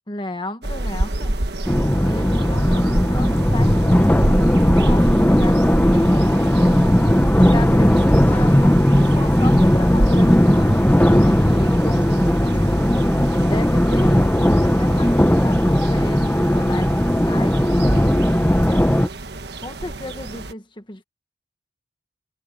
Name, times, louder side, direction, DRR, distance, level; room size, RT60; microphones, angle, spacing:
voice 1, 0.1-1.4 2.0-4.5 4.8-6.3 7.3-12.7 13.5-18.9 19.6-21.0, left 1 dB, 25° left, 1.3 m, -34 dB
sound 1, 0.6-20.5, right 1 dB, 65° right, 1.4 m, -28 dB
sound 2, 1.7-19.1, equal, 10° left, 0.7 m, -17 dB
head